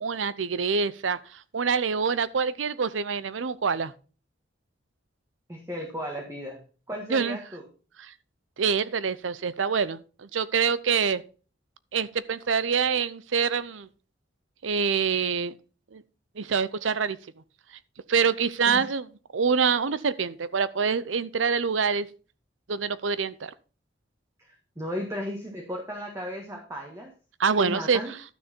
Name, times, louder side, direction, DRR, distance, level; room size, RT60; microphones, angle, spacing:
voice 1, 0.0-3.9 7.1-7.4 8.0-8.1 8.6-11.2 11.9-13.9 14.6-15.5 15.9-16.0 16.4-17.2 18.1-19.0 19.3-22.1 22.7-23.5 27.4-28.0, right 6 dB, 90° right, 0.6 m, -26 dB
voice 2, 5.5-7.6 18.7-18.9 24.4-27.1 27.6-28.1, equal, 15° right, 1.6 m, -35 dB
12.0 x 6.6 x 4.4 m
head